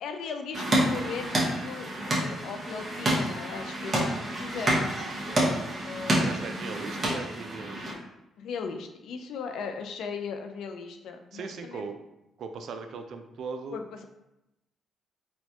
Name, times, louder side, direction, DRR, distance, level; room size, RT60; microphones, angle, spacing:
voice 1, 0.0-4.9 5.8-6.5 8.4-11.8 13.7-14.0, left 5 dB, 80° left, 6 dB, 0.4 m, -38 dB
sound 1, 0.5-7.9, right 1 dB, 30° right, 1.0 m, -28 dB
voice 2, 6.2-7.9 11.3-11.9 12.4-13.8, right 4 dB, 70° right, 6 dB, 0.4 m, -38 dB
4.2 x 2.2 x 2.8 m, 0.92 s
cardioid pair, 90°, 0 cm